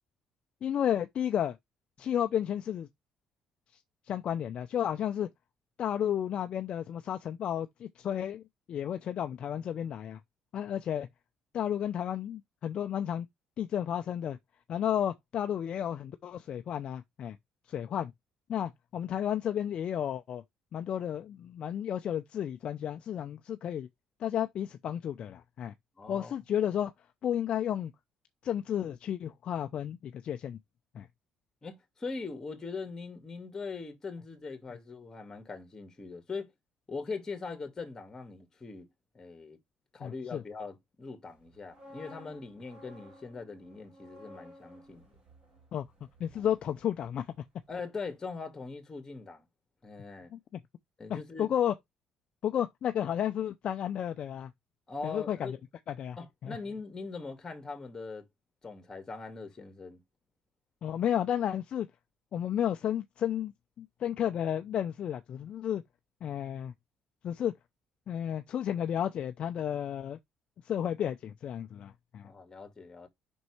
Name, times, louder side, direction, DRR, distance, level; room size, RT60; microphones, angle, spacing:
voice 1, 0.6-1.6 2.0-2.9 4.1-5.3 5.8-8.4 8.7-10.2 10.5-11.1 11.5-13.3 13.6-14.4 14.7-17.4 17.7-18.1 18.5-20.4 20.7-23.9 24.2-25.7 26.1-26.9 27.2-27.9 28.4-30.6 30.9-31.1 40.0-40.4 45.7-45.9 46.2-47.3 50.3-50.4 51.1-51.7 52.4-54.5 55.0-55.6 55.9-56.2 56.4-56.6 60.8-61.9 62.3-63.5 63.8-65.8 66.2-66.7 67.2-67.5 68.1-70.2 70.6-72.3, left 10 dB, 55° left, 0.6 m, -32 dB
voice 2, 26.0-26.3 31.6-36.5 36.9-38.9 39.1-39.6 39.9-45.1 46.3-46.4 47.7-49.5 49.8-50.3 51.0-51.5 54.9-55.6 56.2-58.3 58.6-60.0 72.2-73.1, left 4 dB, 25° left, 2.1 m, -41 dB
sound 1, 41.4-47.4 47.7-47.9, equal, 40° right, 4.3 m, -54 dB
5.4 x 4.0 x 4.8 m
cardioid pair, 110°, 2 cm